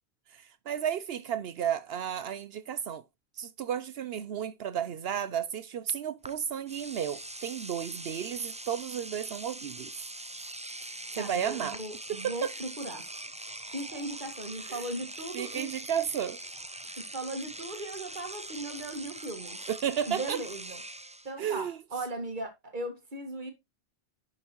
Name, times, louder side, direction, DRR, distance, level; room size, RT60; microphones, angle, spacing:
voice 1, 0.3-3.0 3.4-9.9 10.8-11.8 12.1-12.5 14.7-14.8 15.3-16.4 19.7-20.4 21.4-21.8, right 9 dB, 70° right, 0.8 m, -33 dB
Engine / Domestic sounds home sounds, 6.2-6.4 6.7-21.3, right 1 dB, 10° right, 0.4 m, -42 dB
voice 2, 11.2-13.1 13.7-15.7 17.0-19.6 20.1-20.8 21.2-23.5, right 1 dB, 50° right, 2.0 m, -38 dB
10.5 x 6.0 x 3.0 m
omnidirectional pair, 1.1 m